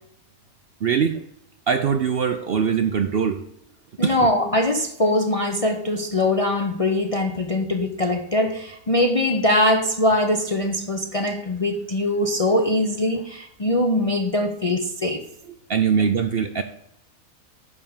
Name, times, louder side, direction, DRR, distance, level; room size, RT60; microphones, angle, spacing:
voice 1, 0.8-1.2 1.7-3.4 4.0-4.2 15.7-16.6, right 7 dB, 65° right, 8 dB, 0.6 m, -21 dB
voice 2, 4.0-15.2, left 1 dB, 35° left, 3 dB, 0.6 m, -22 dB
9.7 x 3.6 x 7.1 m, 0.79 s
omnidirectional pair, 1.5 m